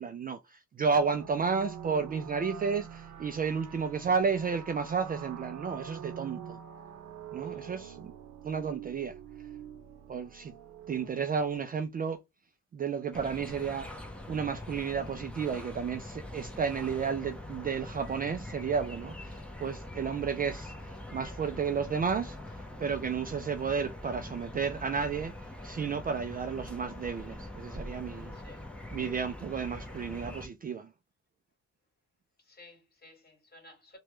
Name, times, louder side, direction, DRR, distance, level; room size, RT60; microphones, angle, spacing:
voice 1, 0.0-6.6 7.3-8.1 8.4-9.1 10.1-10.5 10.9-12.2 12.7-25.3 25.6-28.3 28.9-30.9, right 6 dB, 30° right, 0.4 m, -32 dB
sound 1, 0.9-11.6, right 8 dB, 65° right, 0.7 m, -45 dB
voice 2, 7.4-7.8 10.6-10.7 28.3-28.7 32.4-34.0, left 1 dB, 30° left, 1.9 m, -56 dB
sound 2, 13.1-30.5, left 1 dB, 5° left, 0.7 m, -43 dB
3.0 x 2.3 x 2.9 m
cardioid pair, 90°, 30 cm